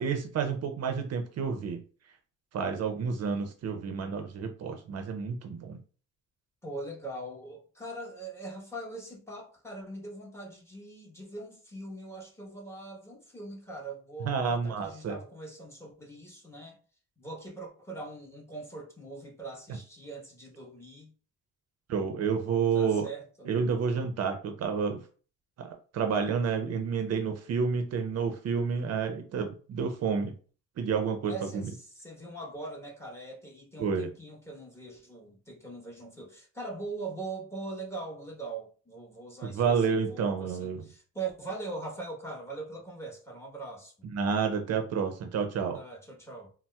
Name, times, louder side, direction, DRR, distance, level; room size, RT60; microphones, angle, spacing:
voice 1, 0.0-1.8 2.5-5.8 14.2-15.2 21.9-23.1 23.5-25.0 25.6-30.3 30.8-31.7 33.8-34.1 39.4-40.8 44.1-45.8, right 6 dB, 55° right, 0.5 m, -30 dB
voice 2, 6.6-16.8 17.2-21.1 22.7-23.5 31.3-43.9 45.7-46.5, right 2 dB, 10° left, 1.0 m, -41 dB
4.1 x 2.0 x 2.2 m
cardioid pair, 90°, 30 cm